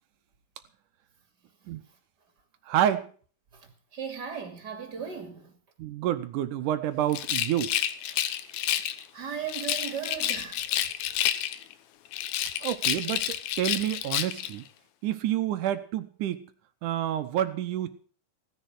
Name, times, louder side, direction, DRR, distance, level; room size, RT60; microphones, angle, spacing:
voice 1, 2.7-3.1 5.8-7.7 12.6-14.7 15.0-16.5 16.8-18.0, right 11 dB, 75° right, 2.1 m, -28 dB
voice 2, 3.5-5.5 8.6-10.6, right 7 dB, 30° right, 2.9 m, -37 dB
Rattle, 7.1-9.0 9.5-11.7 12.1-14.6, left 12 dB, 90° left, 2.8 m, -29 dB
16.5 x 10.5 x 6.2 m
omnidirectional pair, 4.2 m